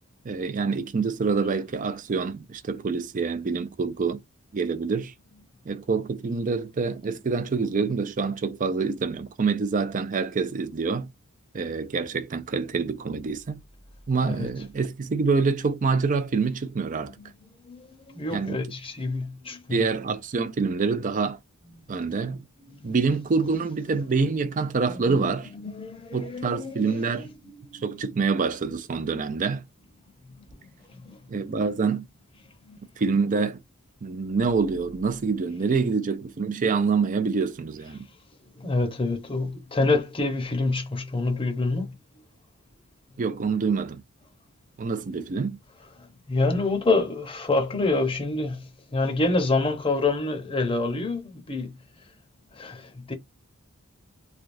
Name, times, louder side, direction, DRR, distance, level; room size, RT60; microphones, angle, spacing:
voice 1, 0.2-4.2 4.5-5.1 5.7-11.1 11.5-13.6 14.1-17.1 18.3-18.6 19.7-21.4 21.9-22.4 22.8-25.5 26.1-27.3 27.8-29.6 31.3-32.0 33.0-33.6 34.0-38.1 43.2-44.0 44.8-45.6, right 4 dB, 40° right, 0.4 m, -26 dB
voice 2, 17.6-19.9 21.8-22.1 22.6-23.0 24.3-24.4 24.9-27.8 30.5-30.6 30.9-31.2 32.6-32.8 38.5-41.9 46.0-51.7 52.5-53.1, left 3 dB, 25° left, 0.8 m, -28 dB
3.3 x 2.3 x 2.6 m
head